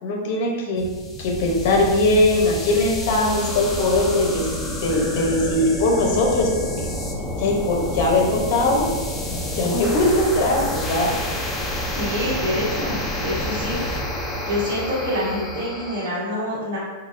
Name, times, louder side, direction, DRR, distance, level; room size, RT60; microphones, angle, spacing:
voice 1, 0.0-0.8 1.2-6.7 7.4-8.9 9.3-11.1, left 2 dB, 55° left, -1 dB, 0.8 m, -20 dB
sound 1, 0.8-16.1, left 1 dB, 15° left, 0.4 m, -29 dB
voice 2, 11.9-13.8 14.4-16.8, left 1 dB, 75° right, -10 dB, 1.0 m, -26 dB
3.9 x 2.2 x 2.6 m, 1.3 s
hypercardioid pair, 135°, 0 cm